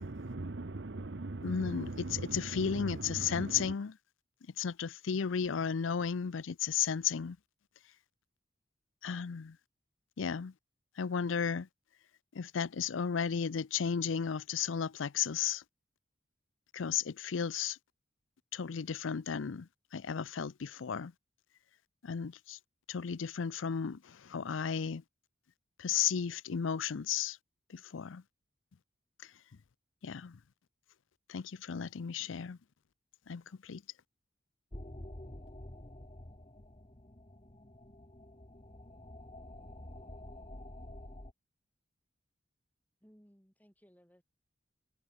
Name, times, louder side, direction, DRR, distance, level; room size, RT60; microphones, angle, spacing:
voice 1, 0.0-3.7, right 2 dB, 65° right, 0.9 m, -40 dB
voice 2, 1.4-3.9 4.6-7.4 9.0-9.6 10.2-10.5 11.0-11.7 12.3-15.6 16.7-17.8 18.5-21.1 22.0-22.6 22.9-25.0 25.8-27.4 27.7-28.2 29.2-29.3 30.0-30.4 31.3-32.6 33.3-33.8, left 7 dB, 85° left, 0.5 m, -34 dB
sound 1, 34.7-41.3, left 1 dB, 30° left, 1.5 m, -49 dB
voice 3, 43.0-44.2, equal, 10° left, 7.8 m, -62 dB
head